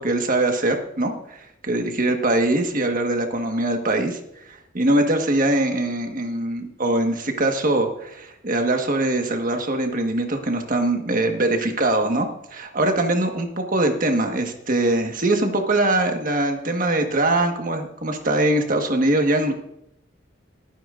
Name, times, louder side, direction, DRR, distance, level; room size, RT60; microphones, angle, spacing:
voice 1, 0.0-4.2 4.5-19.5, right 2 dB, 45° right, 4 dB, 1.6 m, -22 dB
21.5 x 9.1 x 2.6 m, 0.79 s
head